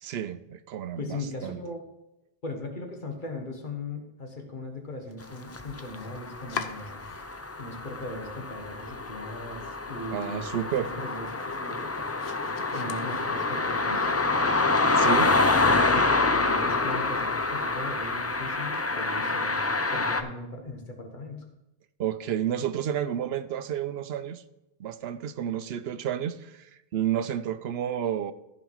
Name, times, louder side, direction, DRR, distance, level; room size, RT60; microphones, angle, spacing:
voice 1, 0.0-1.6 10.1-10.9 15.0-15.3 22.0-24.4 24.8-28.3, right 10 dB, 80° right, 13 dB, 0.8 m, -31 dB
voice 2, 1.0-1.8 2.4-7.1 7.6-10.5 10.8-11.8 12.7-14.1 15.7-21.5, left 2 dB, 50° left, 3 dB, 1.5 m, -38 dB
Domestic sounds home sounds, 5.0-7.6 7.9-8.7 9.0-9.1 9.6-9.7 10.0-13.7, left 6 dB, 85° left, 1.0 m, -43 dB
sound 1, 5.5-20.2, left 3 dB, 25° left, 0.3 m, -27 dB
14.5 x 5.0 x 4.7 m, 0.92 s
omnidirectional pair, 1.0 m